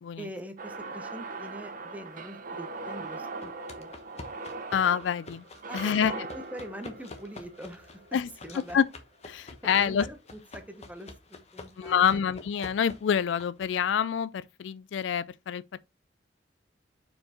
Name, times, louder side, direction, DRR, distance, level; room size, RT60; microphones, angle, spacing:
voice 1, 0.2-3.9 5.7-8.8 9.4-12.2, equal, 10° right, 1.0 m, -43 dB
sound 1, 0.6-8.7, right 3 dB, 45° right, 0.9 m, -41 dB
sound 2, 3.4-13.9, left 2 dB, 35° left, 1.1 m, -48 dB
voice 2, 4.7-5.4 5.7-6.1 8.1-8.3 8.7-8.9 9.3-10.0 11.8-15.8, left 8 dB, 75° left, 0.4 m, -27 dB
5.1 x 4.7 x 4.3 m
head